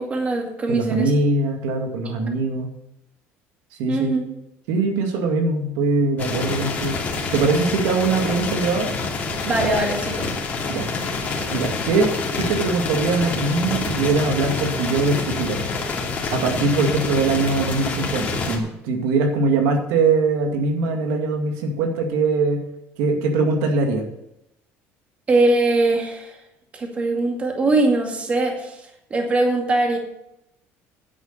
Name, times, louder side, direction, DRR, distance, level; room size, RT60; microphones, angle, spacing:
voice 1, 0.0-1.1 3.9-4.2 9.4-10.3 25.3-26.4 26.7-30.0, right 2 dB, 25° right, 2 dB, 2.3 m, -21 dB
voice 2, 0.7-2.7 3.8-4.2 4.7-7.0 7.3-8.9 10.7-10.9 11.5-12.1 12.4-15.7 16.3-22.6 23.0-24.1, right 3 dB, 90° right, 3 dB, 2.2 m, -22 dB
sound 1, 6.2-18.6, left 4 dB, 30° left, 2.7 m, -27 dB
10.0 x 8.1 x 6.7 m, 0.84 s
cardioid pair, 145°, 5 cm